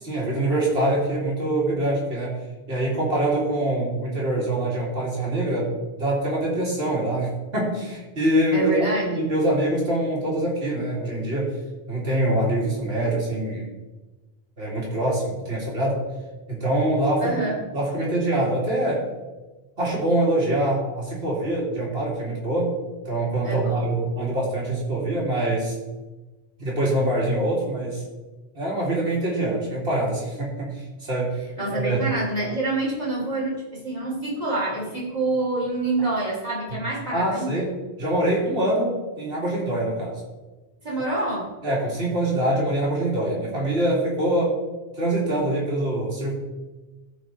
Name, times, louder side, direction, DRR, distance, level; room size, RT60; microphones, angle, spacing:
voice 1, 0.0-2.4 2.7-5.7 6.0-8.7 9.1-11.5 11.9-13.7 14.6-16.0 16.5-17.4 17.7-19.1 19.8-22.7 23.0-25.8 26.6-28.0 28.5-31.3 31.7-32.0 36.7-36.8 37.1-40.2 41.6-44.6 44.9-46.4, right 1 dB, 75° right, -4 dB, 2.7 m, -24 dB
voice 2, 8.5-9.2 17.2-17.6 23.4-23.9 31.6-37.6 40.8-41.5, right 2 dB, 40° right, -5 dB, 3.3 m, -26 dB
14.0 x 5.4 x 3.9 m, 1.2 s
omnidirectional pair, 1.0 m